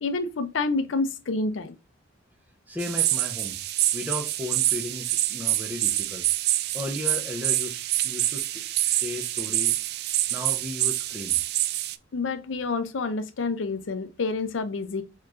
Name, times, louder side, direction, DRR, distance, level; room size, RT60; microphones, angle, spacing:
voice 1, 0.0-1.7 12.1-15.0, left 3 dB, 80° left, 0.5 m, -28 dB
voice 2, 2.7-3.6 3.9-6.2 6.7-9.8 10.3-11.4, left 2 dB, 10° right, 0.7 m, -35 dB
sound 1, 2.8-12.0, right 14 dB, 60° right, 0.3 m, -26 dB
4.3 x 3.0 x 2.5 m
head